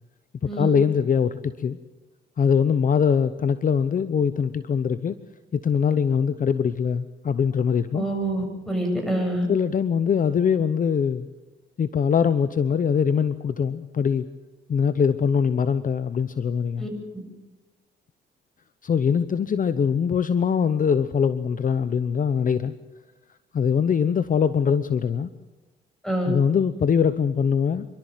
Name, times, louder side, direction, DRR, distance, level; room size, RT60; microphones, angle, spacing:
voice 1, 0.4-1.8 2.4-5.2 5.5-8.0 9.5-11.3 11.8-14.3 14.7-16.9 18.8-22.7 23.5-25.3 26.3-27.9, left 7 dB, 45° left, 13 dB, 0.9 m, -22 dB
voice 2, 7.9-9.5 16.8-16.9 26.0-26.3, right 1 dB, ahead, 2 dB, 7.6 m, -26 dB
27.0 x 12.5 x 9.3 m, 1.1 s
cardioid pair, 90°, 20 cm